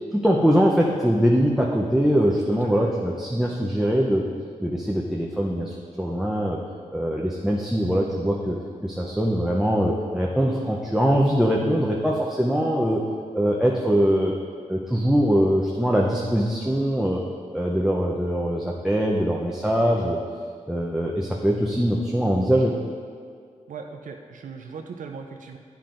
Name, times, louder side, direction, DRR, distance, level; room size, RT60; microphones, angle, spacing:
voice 1, 0.1-4.3 4.6-6.6 6.9-13.0 13.3-14.3 14.7-17.2 17.5-20.2 20.7-22.7, equal, 5° right, -2 dB, 0.6 m, -22 dB
voice 2, 23.7-25.6, right 5 dB, 75° right, 4 dB, 0.4 m, -38 dB
8.6 x 5.7 x 2.5 m, 2.1 s
cardioid pair, 50°, 14 cm